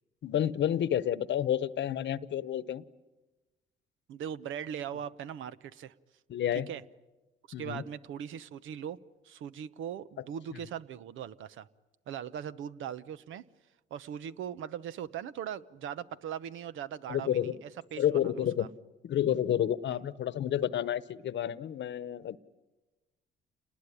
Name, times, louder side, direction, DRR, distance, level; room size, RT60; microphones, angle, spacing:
voice 1, 0.2-2.8 6.3-6.7 7.5-7.8 10.5-10.6 17.1-17.6 18.0-18.7 19.0-22.4, left 10 dB, 65° left, 17 dB, 1.0 m, -30 dB
voice 2, 4.1-5.9 6.5-6.8 7.6-9.0 9.2-11.7 12.1-13.4 13.9-18.0 18.3-18.7 19.9-20.0, right 9 dB, 80° right, 15 dB, 0.9 m, -40 dB
28.5 x 20.0 x 10.0 m, 1.1 s
cardioid pair, 90°, 20 cm